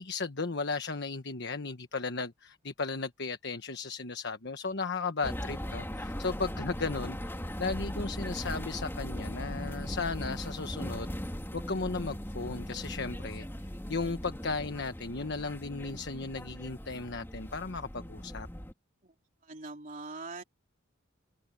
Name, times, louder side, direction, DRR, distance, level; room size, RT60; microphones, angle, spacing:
voice 1, 0.0-11.1 11.5-13.5 13.9-18.5, left 4 dB, 60° left, 1.3 m, -35 dB
sound 1, 5.2-18.7, equal, 10° left, 3.0 m, -39 dB
voice 2, 19.4-20.4, right 3 dB, 40° right, 3.5 m, -42 dB
head